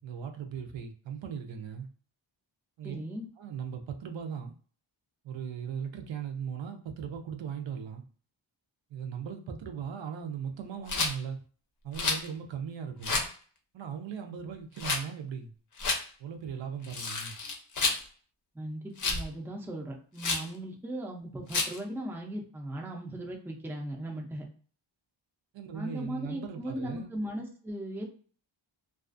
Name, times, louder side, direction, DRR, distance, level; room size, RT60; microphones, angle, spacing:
voice 1, 0.0-1.9 2.8-3.0 3.4-4.5 5.2-8.0 8.9-11.4 11.8-13.3 13.7-15.5 16.2-17.4 25.5-27.2, right 7 dB, 70° right, 0.6 m, -38 dB
voice 2, 2.8-3.3 18.5-24.4 25.7-28.1, right 1 dB, 5° right, 0.4 m, -38 dB
Rattle, 10.9-11.1 11.9-12.3 13.0-13.3 14.8-15.0 15.8-16.0 16.8-18.0 19.0-19.3 20.2-20.5 21.5-21.8, left 3 dB, 40° left, 0.6 m, -30 dB
2.4 x 2.3 x 2.4 m
wide cardioid pair, 125°, 47 cm